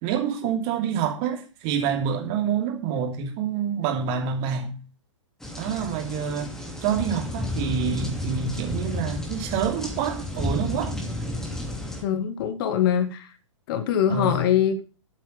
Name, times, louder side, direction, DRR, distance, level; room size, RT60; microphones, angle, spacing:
voice 1, 0.0-4.7 5.6-6.5 6.8-11.0 14.1-14.4, right 7 dB, 35° right, 3.0 m, -27 dB
sound 1, 5.4-12.0, left 1 dB, 5° left, 2.7 m, -32 dB
voice 2, 12.0-13.3 13.7-14.8, left 9 dB, 45° left, 2.1 m, -23 dB
13.0 x 8.4 x 5.4 m
hypercardioid pair, 125°, 16 cm